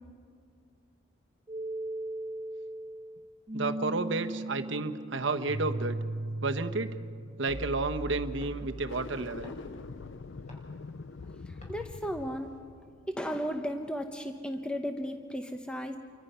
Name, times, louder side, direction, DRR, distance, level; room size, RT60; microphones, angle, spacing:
sound 1, 1.5-9.4, right 2 dB, 25° right, 0.6 m, -38 dB
voice 1, 3.5-6.0 6.4-7.0 7.4-9.5, right 3 dB, 65° right, 7 dB, 1.1 m, -31 dB
sound 2, 7.4-12.6, left 1 dB, 35° left, 5.0 m, -56 dB
sound 3, 8.8-14.1, left 4 dB, 65° left, 0.5 m, -44 dB
voice 2, 11.5-12.5 13.1-16.0, equal, 5° left, 5 dB, 0.9 m, -35 dB
29.0 x 24.5 x 5.6 m, 2.3 s
head